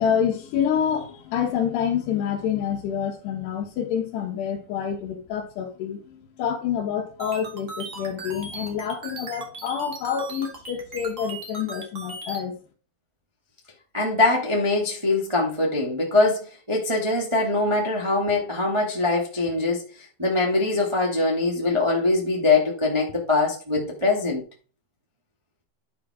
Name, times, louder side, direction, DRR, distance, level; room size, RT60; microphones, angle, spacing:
voice 1, 0.0-12.6, left 8 dB, 85° left, 3.4 m, -27 dB
sound 1, 7.2-12.4, right 3 dB, 55° right, 0.8 m, -37 dB
voice 2, 13.9-19.8 20.2-24.4, left 2 dB, 15° right, 1.2 m, -22 dB
11.0 x 5.7 x 3.7 m
omnidirectional pair, 4.6 m